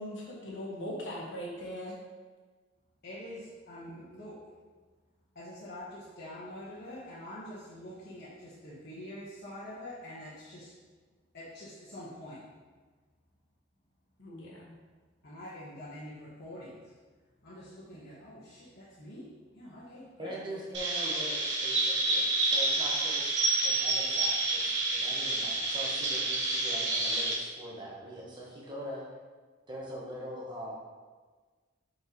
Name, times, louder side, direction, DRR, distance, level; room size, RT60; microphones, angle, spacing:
voice 1, 0.0-2.0 14.2-14.8, equal, 70° left, -3 dB, 1.5 m, -40 dB
voice 2, 3.0-4.4 5.3-10.7 11.3-12.4 15.2-16.8 17.4-19.3 19.5-20.4, left 1 dB, 55° left, -10 dB, 1.2 m, -45 dB
voice 3, 20.2-24.6 24.9-29.1 29.7-30.7, equal, 25° right, -4 dB, 1.3 m, -42 dB
Chirp tweet, 20.7-27.3, right 2 dB, 70° right, 1.3 m, -29 dB
5.8 x 5.6 x 3.1 m, 1.4 s
head